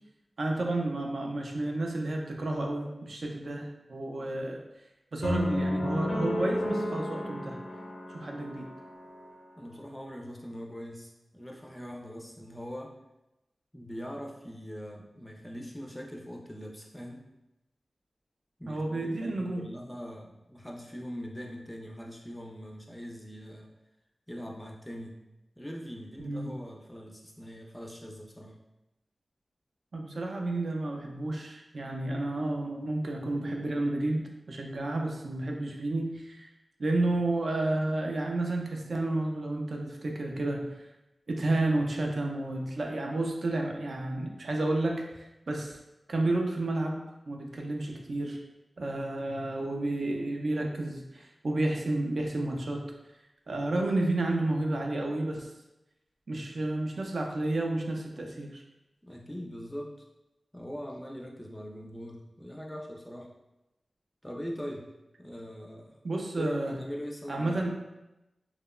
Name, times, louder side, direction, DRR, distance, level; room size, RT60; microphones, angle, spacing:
voice 1, 0.4-4.6 5.1-7.6 8.1-8.7 18.7-19.7 26.2-26.6 29.9-36.5 36.8-40.9 41.3-45.8 46.1-48.4 48.8-52.8 53.5-55.5 56.3-58.6 66.0-66.8 67.3-67.8, right 2 dB, 70° right, 1 dB, 0.3 m, -31 dB
sound 1, 5.2-9.4, left 1 dB, 80° left, 0.5 m, -32 dB
voice 2, 9.6-12.9 13.7-17.2 18.6-23.7 24.3-25.2 25.6-28.5 59.0-59.9 60.5-63.3 64.2-64.9 65.2-66.0 66.3-67.6, equal, 10° left, 0 dB, 0.4 m, -42 dB
2.8 x 2.0 x 2.2 m, 0.96 s
wide cardioid pair, 70°, 0 cm